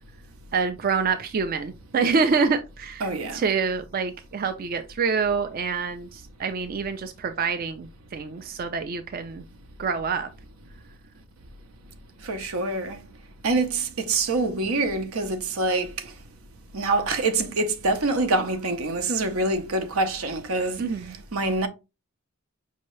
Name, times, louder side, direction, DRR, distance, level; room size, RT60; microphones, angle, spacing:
voice 1, 0.5-9.4 9.8-10.3 20.8-21.1, right 5 dB, 45° right, 0.4 m, -26 dB
voice 2, 3.0-3.4 12.2-13.0 13.4-15.9 16.7-20.8 21.3-21.7, right 2 dB, 80° right, 0.7 m, -25 dB
5.3 x 2.8 x 3.1 m
head